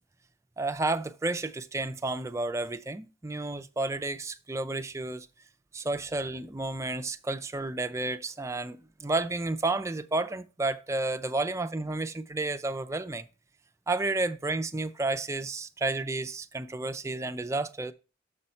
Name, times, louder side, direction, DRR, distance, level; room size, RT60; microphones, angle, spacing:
voice 1, 0.6-5.3 5.7-13.2 13.9-17.9, right 2 dB, 15° right, 0.4 m, -31 dB
7.0 x 5.5 x 4.3 m
head